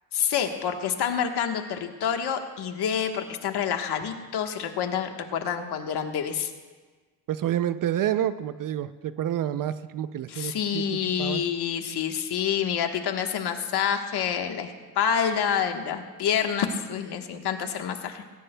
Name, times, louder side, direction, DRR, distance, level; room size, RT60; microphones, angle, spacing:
voice 1, 0.1-6.5 10.3-18.2, left 8 dB, 70° left, 5 dB, 1.3 m, -28 dB
voice 2, 7.3-10.8 11.2-11.4, right 11 dB, 55° right, 12 dB, 0.5 m, -28 dB
20.5 x 18.0 x 2.2 m, 1.3 s
cardioid pair, 140°, 41 cm